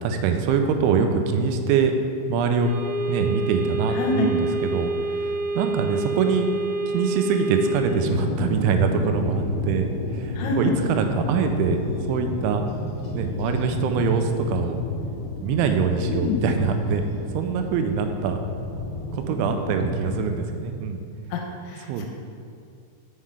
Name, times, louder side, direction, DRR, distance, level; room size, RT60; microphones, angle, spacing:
voice 1, 0.0-1.9 2.3-2.7 3.1-6.5 6.9-11.8 12.1-12.6 13.1-14.8 15.4-17.0 17.3-18.4 19.1-21.0 21.9-22.1, right 6 dB, 85° right, 6 dB, 2.9 m, -24 dB
sound 1, 2.6-7.8, right 2 dB, 60° right, 3.1 m, -28 dB
voice 2, 3.9-4.3 10.4-10.7 16.0-16.4 21.3-22.1, left 2 dB, 85° left, 1 dB, 3.0 m, -26 dB
sound 2, 7.8-20.2, left 2 dB, 65° left, 2.9 m, -31 dB
6.6 x 5.6 x 4.8 m, 2.3 s
omnidirectional pair, 5.3 m